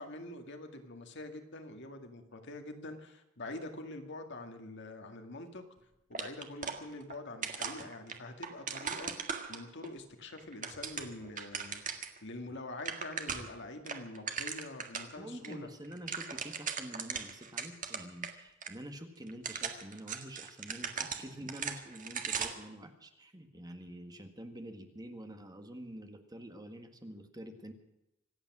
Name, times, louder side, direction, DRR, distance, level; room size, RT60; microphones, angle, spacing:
voice 1, 0.0-5.6 6.1-9.1 9.5-15.7, left 2 dB, 60° left, 5 dB, 2.1 m, -45 dB
sound 1, 6.1-7.2 7.4-9.9 10.4-12.2 12.5-12.6 12.8-13.6 13.9-15.1 15.4-15.5 15.8-18.3 18.6-18.7 19.3-22.7, right 6 dB, 40° right, 1.7 m, -39 dB
voice 2, 15.1-27.7, equal, 20° right, 6 dB, 1.7 m, -47 dB
26.0 x 8.8 x 6.1 m, 0.89 s
head